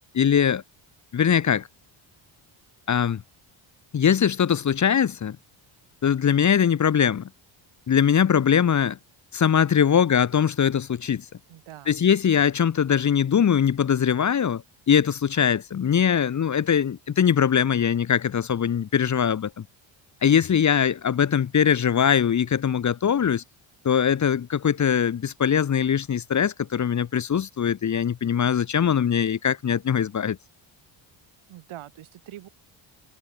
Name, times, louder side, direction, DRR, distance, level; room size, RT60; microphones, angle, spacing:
voice 1, 0.1-0.6 1.1-1.7 2.9-3.2 3.9-5.4 6.0-7.3 7.9-9.0 9.3-11.2 11.9-19.6 20.2-23.4 23.8-30.4, left 8 dB, 35° left, 1.2 m, -21 dB
voice 2, 11.5-12.0 31.5-32.5, right 13 dB, 85° right, 7.6 m, -43 dB
cardioid pair, 125°, 48 cm